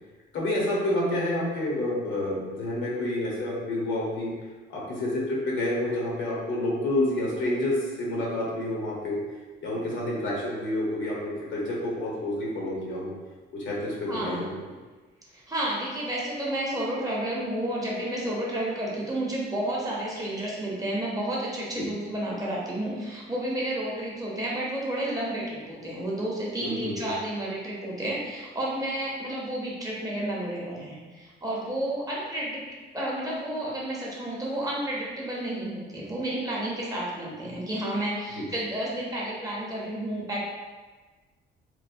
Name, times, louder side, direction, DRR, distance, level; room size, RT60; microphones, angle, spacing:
voice 1, 0.3-4.3 4.7-9.2 9.6-13.1 13.5-14.7 21.7-21.8 26.6-27.1 38.4-38.5, left 1 dB, 70° left, -4 dB, 0.9 m, -29 dB
voice 2, 14.0-14.5 15.3-32.6 32.9-40.4, right 1 dB, 15° right, -5 dB, 0.7 m, -31 dB
3.1 x 2.0 x 2.5 m, 1.3 s
cardioid pair, 90°, 20 cm